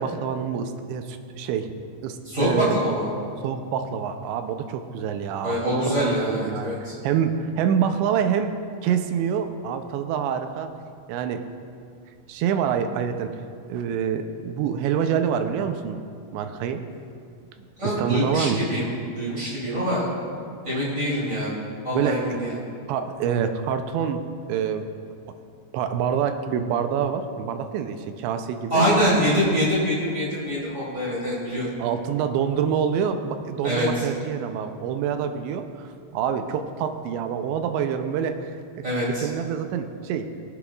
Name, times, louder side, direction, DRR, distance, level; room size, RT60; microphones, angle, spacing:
voice 1, 0.0-1.7 2.0-2.8 3.4-6.7 7.0-8.5 8.8-10.7 11.1-11.4 12.3-13.4 13.7-16.0 16.3-16.8 17.8-18.6 21.9-22.4 22.9-24.2 24.5-24.8 25.7-28.8 31.8-40.4, right 8 dB, 90° right, 7 dB, 2.9 m, -26 dB
voice 2, 2.2-3.1 5.4-6.9 17.8-20.1 20.6-21.6 21.8-22.6 28.7-31.7 33.6-34.1 38.8-39.3, equal, 20° right, -8 dB, 2.6 m, -24 dB
22.0 x 8.0 x 2.4 m, 2.3 s
omnidirectional pair, 5.1 m